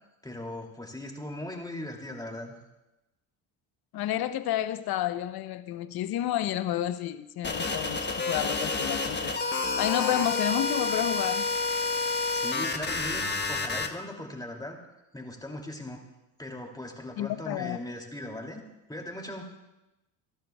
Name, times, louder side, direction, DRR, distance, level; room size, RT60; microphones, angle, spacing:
voice 1, 0.2-2.6 12.3-14.8 15.1-16.0 16.4-18.6 18.9-19.5, left 1 dB, 10° left, 2.6 m, -39 dB
voice 2, 3.9-11.4 17.2-17.8, left 12 dB, 60° left, 0.9 m, -30 dB
sound 1, 7.4-13.9, left 3 dB, 25° left, 1.3 m, -29 dB
22.0 x 11.5 x 2.3 m
supercardioid pair, 70°, 43 cm